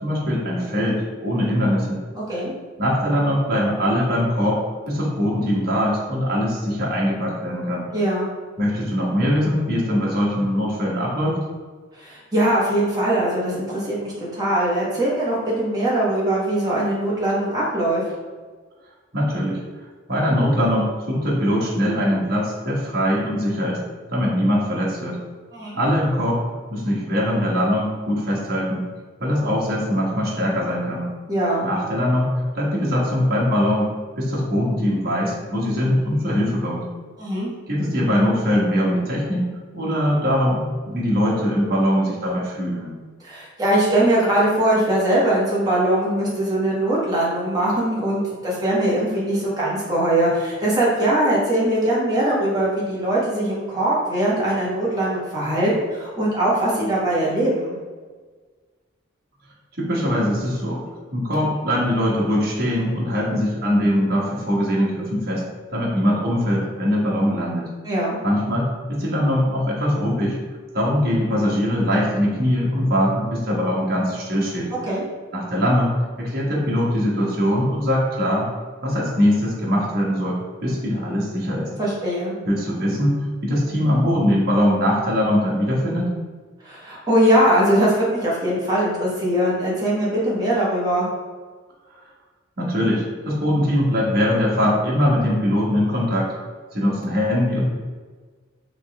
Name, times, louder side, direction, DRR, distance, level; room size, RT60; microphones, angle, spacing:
voice 1, 0.0-2.0 2.8-7.9 8.6-11.4 19.1-19.6 20.1-23.8 24.1-25.2 25.7-26.4 26.7-28.8 29.2-31.1 31.6-33.9 34.2-36.8 37.7-39.4 39.7-42.9 59.7-60.8 61.1-65.4 65.7-67.7 68.2-70.4 70.7-74.7 75.3-78.5 78.8-81.7 82.5-86.1 91.9-92.1 92.6-96.3 96.7-97.6, equal, 45° right, -5 dB, 1.3 m, -22 dB
voice 2, 7.9-8.3 11.9-18.0 25.5-25.8 31.3-31.7 37.2-37.5 43.2-57.8 67.8-68.2 74.9-75.0 81.8-82.3 86.6-91.1, right 1 dB, 20° right, -7 dB, 1.2 m, -21 dB
4.0 x 3.2 x 3.5 m, 1.4 s
head